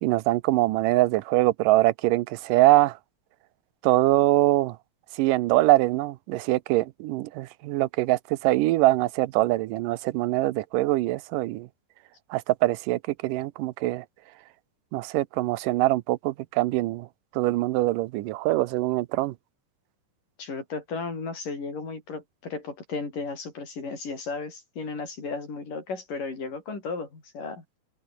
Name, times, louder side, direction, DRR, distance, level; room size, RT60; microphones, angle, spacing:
voice 1, 0.0-3.0 3.8-4.8 5.2-11.7 12.3-14.0 14.9-17.1 17.4-19.3, right 18 dB, 90° right, 2.4 m, -23 dB
voice 2, 20.4-27.6, left 4 dB, 80° left, 8.3 m, -34 dB
open air
omnidirectional pair, 3.7 m